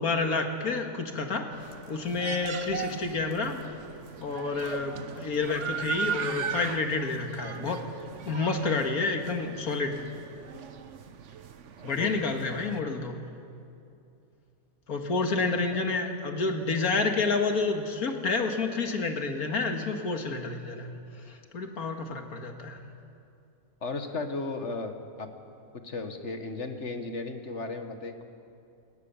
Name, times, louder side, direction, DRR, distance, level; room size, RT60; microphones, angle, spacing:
voice 1, 0.0-1.5 1.9-3.6 4.2-7.8 8.3-9.9 11.8-13.2 14.9-20.9 21.5-22.8, left 3 dB, 75° left, 4 dB, 2.3 m, -29 dB
sound 1, 1.5-12.8, right 7 dB, 55° right, 1.2 m, -38 dB
voice 2, 15.3-15.8 23.8-24.9 25.2-25.3 25.8-28.2, left 3 dB, 50° left, 6 dB, 1.8 m, -35 dB
29.5 x 17.5 x 7.0 m, 2.6 s
omnidirectional pair, 1.5 m